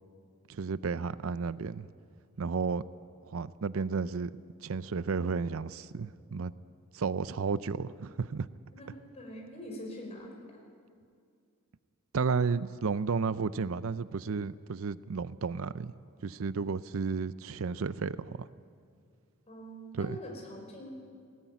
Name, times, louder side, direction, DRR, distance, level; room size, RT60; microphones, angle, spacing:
voice 1, 0.5-1.9 2.4-2.8 3.3-4.3 4.6-6.5 6.9-8.5 12.1-15.9 16.2-18.5 20.0-20.2, right 5 dB, 70° right, 16 dB, 0.5 m, -32 dB
voice 2, 8.7-10.6 19.5-20.9, equal, 30° left, 0 dB, 5.2 m, -44 dB
19.5 x 17.5 x 9.3 m, 2.3 s
head